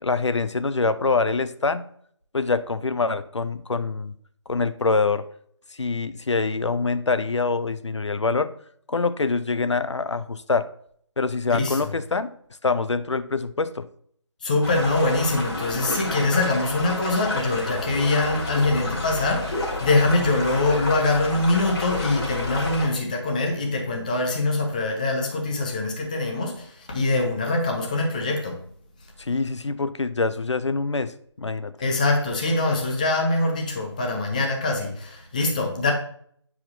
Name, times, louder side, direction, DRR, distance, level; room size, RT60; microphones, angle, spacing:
voice 1, 0.0-1.9 2.3-4.1 4.5-5.2 5.8-8.5 8.9-10.7 11.2-12.3 12.6-13.9 29.2-31.7, left 4 dB, 75° left, 0.5 m, -25 dB
voice 2, 11.6-11.9 14.4-28.6 31.8-35.9, left 2 dB, 15° left, 0.6 m, -23 dB
sound 1, 14.6-22.9, left 1 dB, 55° left, 2.7 m, -30 dB
8.1 x 4.9 x 2.6 m
figure-of-eight pair, 155°, 15 cm